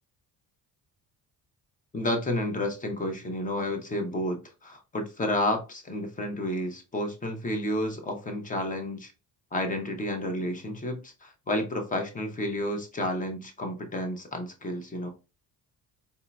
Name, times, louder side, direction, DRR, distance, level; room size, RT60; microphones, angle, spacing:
voice 1, 1.9-9.1 9.5-15.1, left 1 dB, 20° left, 0.8 m, -31 dB
4.1 x 2.7 x 2.2 m
cardioid pair, 125°, 37 cm